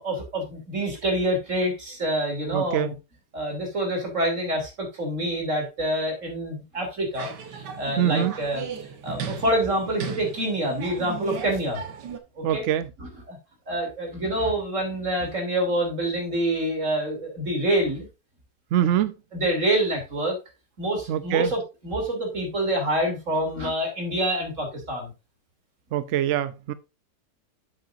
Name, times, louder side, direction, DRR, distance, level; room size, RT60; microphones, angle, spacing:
voice 1, 0.0-2.9 3.3-8.6 9.0-11.8 12.4-12.6 13.0-13.4 13.7-18.1 19.3-20.4 20.8-25.1, right 1 dB, 45° right, 3.5 m, -26 dB
voice 2, 2.5-2.9 8.0-8.3 12.4-12.9 18.7-19.2 21.1-21.5 25.9-26.7, right 11 dB, 70° right, 0.7 m, -24 dB
sound 1, 7.1-12.2, right 6 dB, 90° right, 1.8 m, -36 dB
9.7 x 7.7 x 2.5 m
omnidirectional pair, 1.8 m